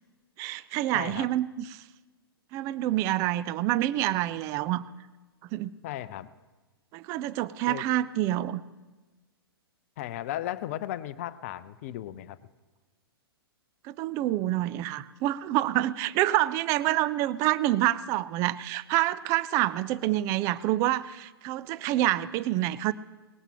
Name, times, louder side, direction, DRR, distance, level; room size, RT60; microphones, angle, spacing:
voice 1, 0.4-1.8 2.5-4.8 5.5-5.7 6.9-8.6 13.8-22.9, right 15 dB, 25° right, 17 dB, 0.4 m, -27 dB
voice 2, 0.9-1.3 5.8-6.3 7.7-7.8 10.0-12.4, left 13 dB, 35° left, 15 dB, 0.6 m, -35 dB
20.0 x 19.0 x 2.9 m, 1.3 s
figure-of-eight pair, 110°, 13 cm